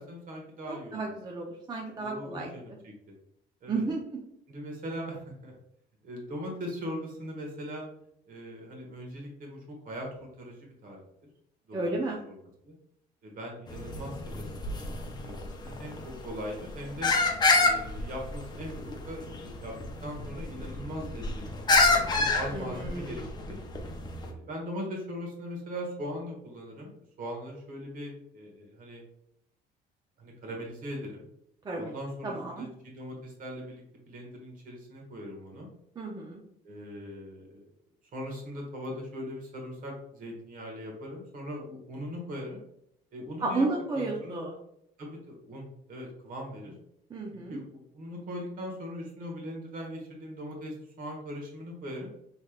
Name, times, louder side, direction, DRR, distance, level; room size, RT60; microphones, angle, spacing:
voice 1, 0.0-1.1 2.0-2.9 3.6-3.8 4.5-5.5 6.0-7.9 8.3-11.0 11.7-11.9 12.3-12.4 12.6-12.7 13.2-17.1 17.6-19.7 20.0-23.6 24.2-26.9 27.2-29.0 30.2-31.3 31.8-35.7 36.6-37.6 38.1-42.6 43.1-43.7 43.9-44.4 45.0-46.7 47.5-52.1, equal, 55° right, 0 dB, 1.2 m, -40 dB
voice 2, 0.7-2.5 3.7-4.2 11.7-12.2 22.5-23.3 31.6-32.0 32.2-32.7 36.0-36.4 43.4-44.5 47.1-47.6, right 2 dB, 25° right, -1 dB, 0.5 m, -32 dB
sound 1, 13.7-24.3, left 3 dB, 25° left, 0.5 m, -28 dB
3.2 x 3.1 x 2.3 m, 0.75 s
cardioid pair, 110°, 17 cm